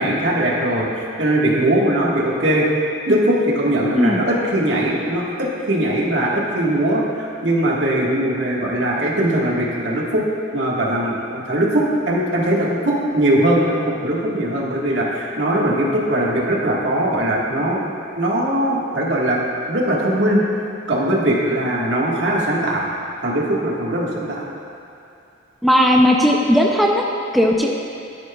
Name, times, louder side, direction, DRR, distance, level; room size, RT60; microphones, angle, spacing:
voice 1, 0.0-2.6 3.1-10.2 10.5-17.8 18.1-19.4 19.7-20.4 20.9-22.9 23.2-24.4, right 1 dB, 75° right, -4 dB, 1.6 m, -20 dB
voice 2, 25.6-27.0 27.3-27.7, equal, ahead, 0 dB, 0.5 m, -16 dB
13.5 x 10.5 x 2.3 m, 2.6 s
head